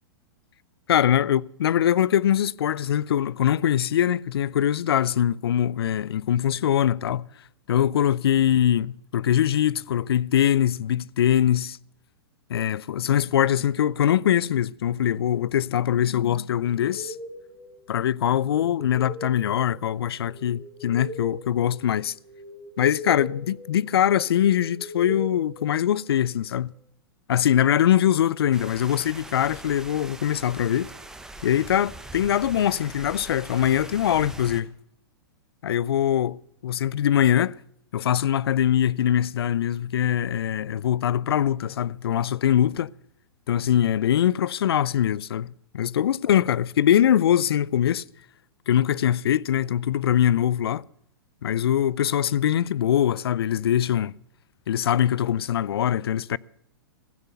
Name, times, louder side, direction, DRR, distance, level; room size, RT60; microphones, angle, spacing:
voice 1, 0.9-7.3 7.7-8.9 9.1-11.8 12.5-17.2 17.9-22.1 22.8-26.7 27.3-30.9 31.4-34.7 35.6-36.3 36.6-37.6 37.9-42.9 43.5-48.0 48.7-50.8 51.4-54.1 54.7-56.4, left 10 dB, 80° left, 0.4 m, -22 dB
sound 1, 16.6-26.3, left 1 dB, 20° left, 4.1 m, -40 dB
sound 2, 28.5-34.6, right 2 dB, 5° right, 1.1 m, -42 dB
15.0 x 8.2 x 7.9 m
hypercardioid pair, 125°, 13 cm